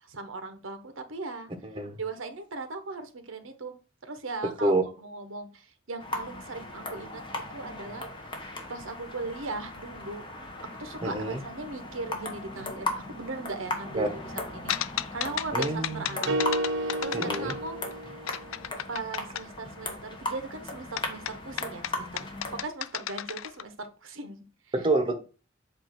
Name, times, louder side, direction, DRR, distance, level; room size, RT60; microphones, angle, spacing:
voice 1, 0.0-1.5 2.0-3.7 4.0-7.2 7.5-8.4 8.7-10.3 10.8-14.8 15.1-16.4 16.7-18.2 18.9-22.3 22.6-24.4 24.8-24.9, right 3 dB, 85° right, 1.0 m, -38 dB
voice 2, 1.6-2.0 4.6-4.8 11.0-11.4 13.9-14.1 15.5-16.3 17.1-17.6 24.7-25.2, right 2 dB, 25° right, 1.0 m, -27 dB
sound 1, 6.0-22.6, left 2 dB, 25° left, 1.2 m, -38 dB
sound 2, 14.7-17.9 18.3-19.5 21.0-23.6, left 11 dB, 85° left, 0.4 m, -34 dB
sound 3, 16.3-18.6, right 1 dB, 60° right, 0.7 m, -31 dB
7.9 x 2.7 x 5.9 m
head